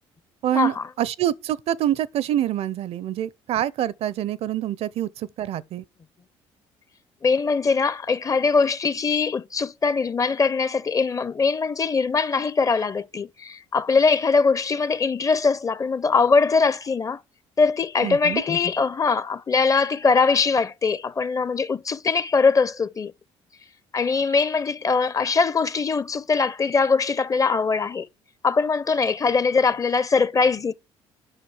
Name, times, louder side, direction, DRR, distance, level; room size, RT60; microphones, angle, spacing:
voice 1, 0.4-5.8 18.0-18.5, right 11 dB, 65° right, 0.5 m, -26 dB
voice 2, 7.2-17.2 17.6-23.1 23.9-28.1 28.4-30.7, left 4 dB, 30° left, 0.6 m, -22 dB
8.8 x 5.9 x 4.8 m
supercardioid pair, 75°, 11 cm